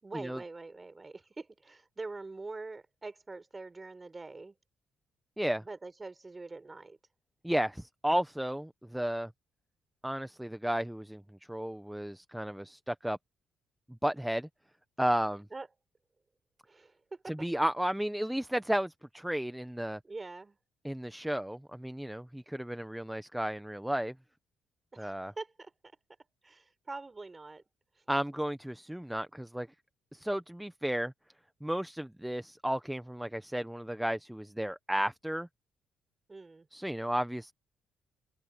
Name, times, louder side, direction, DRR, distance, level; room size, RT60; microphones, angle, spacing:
voice 1, 0.0-4.5 5.6-7.0 15.5-15.7 16.6-17.4 20.0-20.6 24.9-25.7 26.4-27.6 36.3-36.7, right 3 dB, 25° right, 5.1 m, -44 dB
voice 2, 7.4-9.3 10.0-11.2 11.5-13.2 14.0-14.5 15.0-15.5 17.3-20.0 20.8-24.1 25.0-25.3 28.1-29.7 30.1-31.1 31.6-35.5 36.7-37.5, equal, 5° right, 0.9 m, -33 dB
open air
cardioid pair, 90°, 0 cm